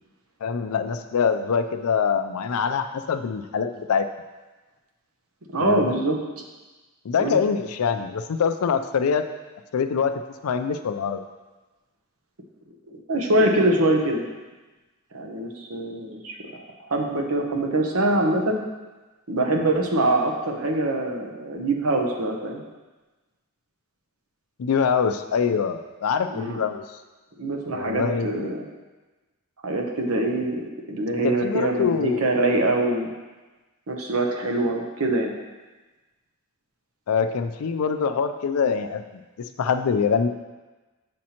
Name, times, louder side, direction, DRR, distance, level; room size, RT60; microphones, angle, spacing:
voice 1, 0.4-4.1 5.6-6.0 7.0-9.2 9.7-10.1 10.4-11.2 24.6-26.8 27.7-28.5 31.2-32.2 37.1-39.0 39.4-40.3, left 6 dB, 90° left, 9 dB, 0.4 m, -24 dB
voice 2, 5.5-6.2 7.2-7.4 12.9-14.2 15.1-16.6 16.9-18.6 19.3-22.6 26.3-26.6 27.4-28.7 29.6-33.1 33.9-35.3, right 1 dB, 85° right, 2 dB, 0.9 m, -24 dB
7.4 x 5.2 x 2.9 m, 1.2 s
head